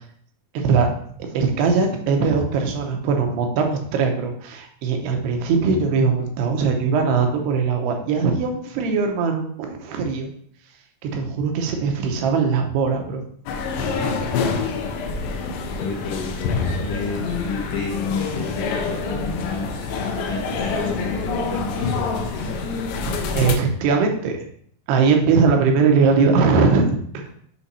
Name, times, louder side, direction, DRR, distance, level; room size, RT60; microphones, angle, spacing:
voice 1, 0.5-0.9 1.2-10.3 11.0-13.2 23.3-24.4 24.9-27.4, right 5 dB, 80° right, 3 dB, 2.9 m, -20 dB
sound 1, 13.5-23.6, left 4 dB, 90° left, 2.1 m, -26 dB
voice 2, 15.8-22.5, left 4 dB, 70° left, -2 dB, 2.4 m, -30 dB
7.4 x 3.4 x 4.1 m, 0.62 s
omnidirectional pair, 4.7 m